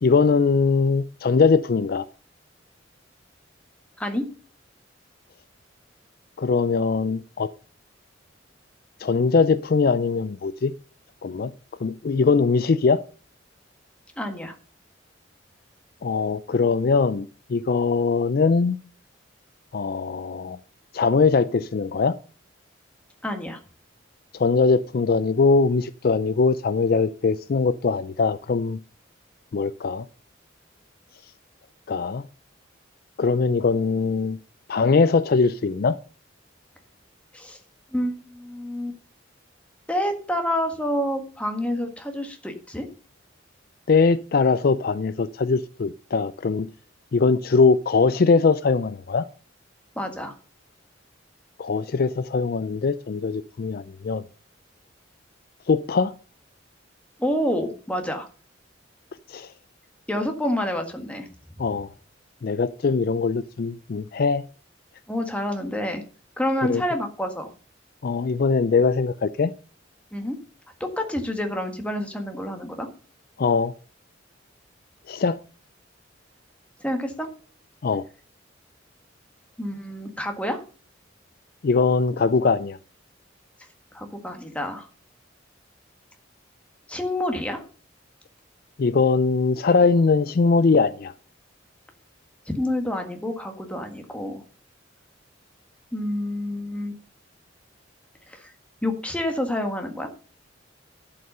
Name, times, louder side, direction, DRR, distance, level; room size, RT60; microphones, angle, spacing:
voice 1, 0.0-2.0 6.4-7.5 9.0-10.7 11.2-11.5 11.8-13.0 16.0-18.8 19.7-20.6 20.9-22.2 24.3-28.8 29.5-30.1 31.9-32.2 33.2-34.4 34.7-36.0 43.9-46.7 47.1-49.2 51.6-54.2 55.7-56.1 59.3-59.5 61.6-61.9 62.4-64.4 66.6-66.8 68.0-69.5 73.4-73.7 75.1-75.4 77.8-78.0 81.6-82.8 88.8-91.1, left 4 dB, 50° left, 0.4 m, -21 dB
voice 2, 14.2-14.5 23.2-23.6 37.3-37.6 37.9-38.9 39.9-42.9 49.9-50.3 57.2-58.3 60.1-61.3 61.5-61.6 65.1-66.0 66.4-67.5 70.1-70.4 70.8-72.9 76.8-77.3 79.6-80.6 83.9-84.9 86.9-87.6 92.5-94.4 95.9-96.9 98.3-98.5 98.8-100.1, left 1 dB, 5° left, 1.6 m, -28 dB
11.0 x 5.4 x 6.7 m
head